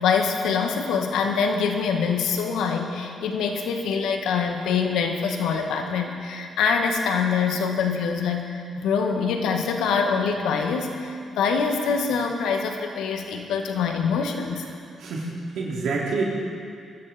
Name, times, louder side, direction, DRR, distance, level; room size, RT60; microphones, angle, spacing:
voice 1, 0.0-14.7, left 5 dB, 80° left, 3 dB, 1.7 m, -24 dB
voice 2, 15.0-16.2, right 4 dB, 75° right, -4 dB, 3.1 m, -27 dB
22.0 x 13.0 x 4.4 m, 2.3 s
supercardioid pair, 60°, 0 cm